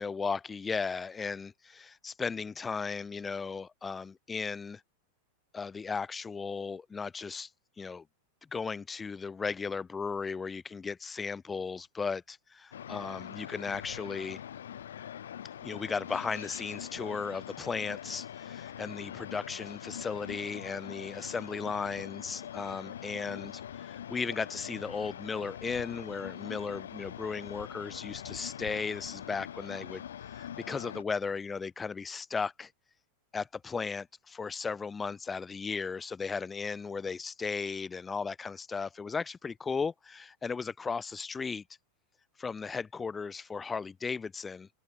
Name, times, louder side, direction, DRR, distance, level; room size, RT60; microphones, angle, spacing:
voice 1, 0.0-4.8 5.5-7.5 7.8-8.0 8.5-14.4 15.6-32.7 33.3-41.6 42.4-44.7, left 5 dB, 15° left, 0.3 m, -36 dB
sound 1, 12.7-31.0, left 9 dB, 65° left, 0.7 m, -43 dB
figure-of-eight pair, 90°, 0 cm